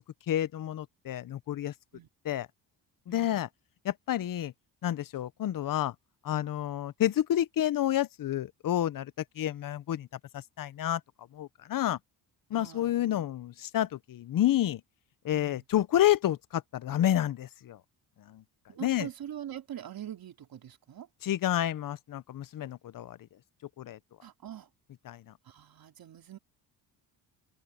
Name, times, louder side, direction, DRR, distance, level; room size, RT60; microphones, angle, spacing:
voice 1, 0.0-1.7 2.2-2.5 3.1-3.5 3.8-4.5 4.8-5.9 6.2-10.1 10.3-11.0 11.3-12.0 12.5-14.8 15.2-17.8 18.2-18.4 18.8-19.1 21.2-23.2 23.8-24.0 25.0-25.3, left 12 dB, 50° left, 0.9 m, -29 dB
voice 2, 3.1-3.4 12.5-12.9 15.3-15.6 18.7-21.1 24.2-24.7 25.5-26.4, right 10 dB, 55° right, 3.8 m, -43 dB
cardioid pair, 85°, 42 cm